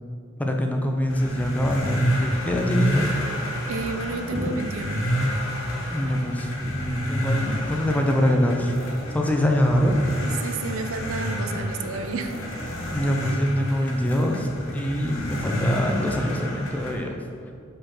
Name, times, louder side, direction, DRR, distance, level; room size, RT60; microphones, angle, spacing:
voice 1, 0.4-3.1 4.3-4.5 5.9-8.8 9.1-9.9 12.9-17.5, equal, 5° left, 2 dB, 0.5 m, -24 dB
sound 1, 1.1-17.0, equal, 65° left, 1.1 m, -29 dB
voice 2, 3.7-5.1 10.2-12.4, right 3 dB, 75° right, 7 dB, 0.5 m, -31 dB
5.3 x 4.2 x 5.7 m, 2.3 s
head